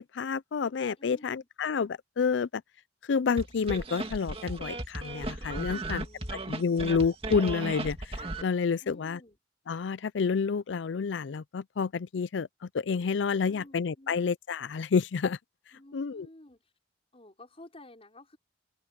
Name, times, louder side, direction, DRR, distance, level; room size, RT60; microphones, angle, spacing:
voice 1, 0.0-2.6 3.1-6.1 6.5-9.2 9.7-15.4 15.9-16.3, left 5 dB, 80° left, 0.5 m, -29 dB
voice 2, 1.0-1.5 5.7-6.9 8.8-9.4 13.4-14.3 15.7-16.7 17.1-18.4, left 1 dB, 35° left, 5.6 m, -53 dB
sound 1, 3.4-8.4, right 2 dB, 30° right, 2.3 m, -35 dB
open air
head